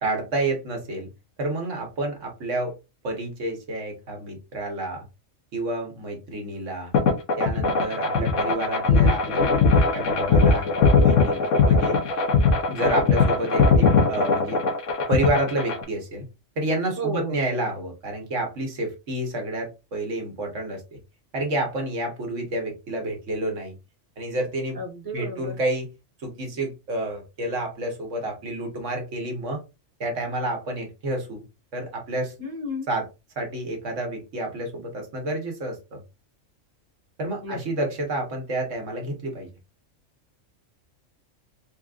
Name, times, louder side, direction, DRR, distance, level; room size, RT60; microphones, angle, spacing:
voice 1, 0.0-1.1 1.4-2.7 3.0-5.0 5.5-6.9 7.4-12.0 12.7-14.6 15.1-16.2 16.6-21.0 21.3-23.7 24.2-24.8 25.1-25.9 26.2-29.6 30.0-31.4 31.7-32.3 32.9-33.1 33.4-36.0 37.2-39.5, right 1 dB, 70° right, 2 dB, 1.5 m, -29 dB
sound 1, 6.9-15.8, left 4 dB, 75° left, 1.1 m, -20 dB
voice 2, 17.0-17.4 24.7-25.5 32.4-32.9 37.4-37.6, right 1 dB, 15° right, 1 dB, 1.1 m, -31 dB
3.8 x 3.6 x 2.4 m, 0.27 s
omnidirectional pair, 1.3 m